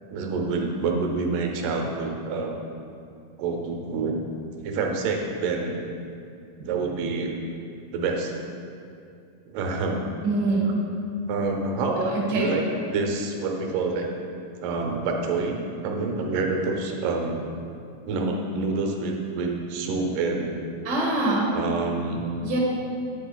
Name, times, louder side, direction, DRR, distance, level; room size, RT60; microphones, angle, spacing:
voice 1, 0.1-2.6 3.4-4.2 4.5-5.8 6.7-7.4 7.9-8.3 9.5-10.1 11.3-12.6 12.9-14.1 14.6-15.6 15.8-17.4 18.1-20.5 21.5-22.3, right 3 dB, 90° right, 2 dB, 2.3 m, -27 dB
voice 2, 10.2-10.7 12.1-12.5 20.8-21.4 22.4-22.6, right 2 dB, 50° right, -4 dB, 1.3 m, -24 dB
9.1 x 7.9 x 2.2 m, 2.5 s
omnidirectional pair, 3.7 m